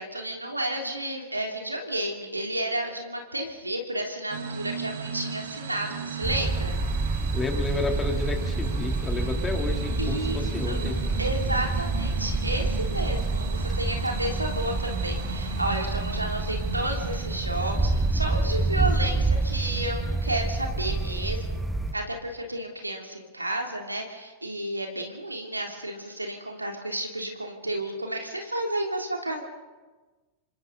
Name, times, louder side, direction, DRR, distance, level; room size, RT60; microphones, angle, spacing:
voice 1, 0.0-6.7 9.2-9.3 10.0-21.6 21.9-29.4, right 1 dB, 85° right, 2 dB, 3.2 m, -32 dB
sound 1, 4.3-20.6, right 7 dB, 60° right, 2.4 m, -38 dB
sound 2, 6.2-21.9, right 2 dB, 5° right, 1.5 m, -28 dB
voice 2, 7.3-11.0, left 3 dB, 15° left, 2 dB, 3.4 m, -31 dB
28.5 x 25.0 x 4.1 m, 1.3 s
figure-of-eight pair, 90°, 0 cm